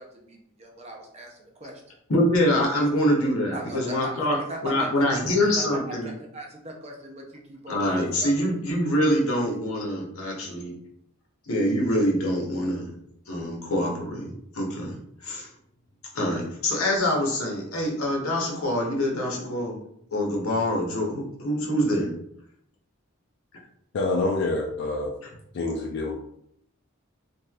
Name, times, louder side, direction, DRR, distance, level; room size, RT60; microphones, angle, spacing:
voice 1, 0.0-1.8 3.5-8.6, right 1 dB, 30° right, 1 dB, 0.5 m, -40 dB
voice 2, 2.1-4.4 4.6-6.1 7.7-10.7 11.5-12.9 13.3-15.5 16.1-19.8 20.1-22.1, equal, 80° left, -1 dB, 0.8 m, -25 dB
voice 3, 23.9-25.1 25.5-26.1, left 2 dB, 55° left, 0 dB, 0.3 m, -26 dB
3.0 x 2.6 x 2.3 m, 0.73 s
head